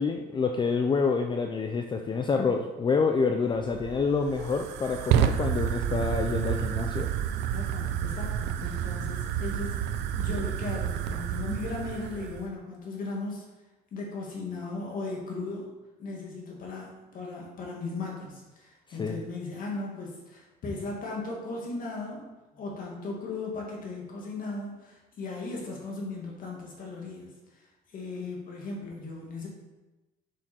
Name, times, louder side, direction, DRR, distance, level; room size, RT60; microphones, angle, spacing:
voice 1, 0.0-7.1 19.0-19.2, left 4 dB, 30° left, 4 dB, 0.5 m, -27 dB
Fire, 3.5-12.5, right 9 dB, 80° right, 0.5 m, -30 dB
voice 2, 7.5-13.4 13.9-15.7 16.0-22.3 22.5-27.6 27.9-29.5, left 3 dB, 55° left, -2 dB, 2.1 m, -37 dB
6.6 x 6.2 x 4.4 m, 1.1 s
cardioid pair, 110°, 17 cm